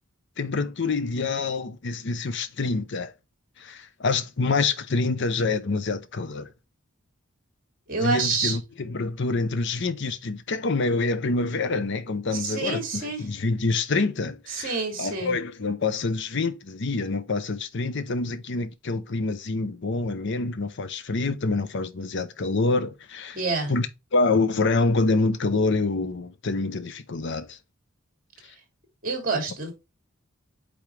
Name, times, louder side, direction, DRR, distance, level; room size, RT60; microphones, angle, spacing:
voice 1, 0.4-3.1 3.6-6.5 8.0-23.4 23.7-27.6, left 3 dB, 60° left, 0.7 m, -26 dB
voice 2, 7.9-8.6 12.3-13.2 14.5-15.4 23.3-23.7 29.0-29.7, right 4 dB, 45° right, 2.6 m, -27 dB
8.5 x 3.5 x 3.2 m
head